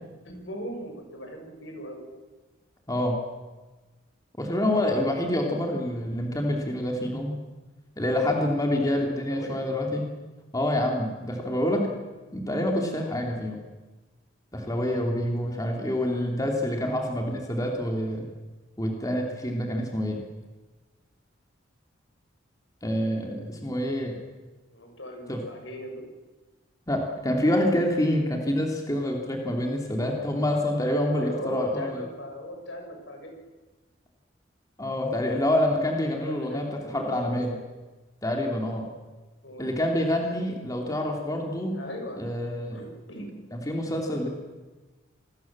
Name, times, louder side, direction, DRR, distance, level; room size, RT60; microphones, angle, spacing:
voice 1, 0.3-2.0 8.8-9.6 24.7-26.0 31.1-33.4 36.2-37.4 39.4-39.7 41.7-42.3 42.7-43.3, equal, 75° left, 3 dB, 6.9 m, -39 dB
voice 2, 4.4-7.4 8.0-10.1 10.5-11.9 12.3-13.6 14.5-18.3 18.8-20.2 22.8-24.2 25.3-25.4 26.9-32.0 34.8-37.6 38.2-38.8 39.6-41.8 42.2-42.8 43.5-44.3, left 1 dB, 20° left, 1 dB, 3.2 m, -27 dB
26.5 x 21.0 x 7.6 m, 1.2 s
head